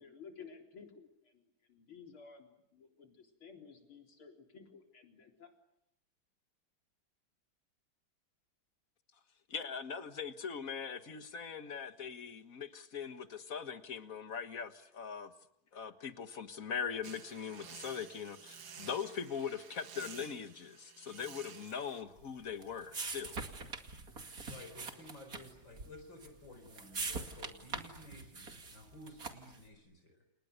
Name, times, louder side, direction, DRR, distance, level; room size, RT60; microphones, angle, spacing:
voice 1, 0.0-1.4 1.7-5.5, left 5 dB, 80° left, 4.7 m, -54 dB
voice 2, 9.5-15.3 15.7-23.4, left 7 dB, 45° left, 1.8 m, -41 dB
sound 1, 17.0-22.0, right 6 dB, 65° right, 2.3 m, -52 dB
sound 2, 22.2-29.6, right 4 dB, 45° right, 2.7 m, -44 dB
voice 3, 24.5-30.2, left 1 dB, 60° left, 5.4 m, -54 dB
29.5 x 29.5 x 6.7 m
omnidirectional pair, 2.3 m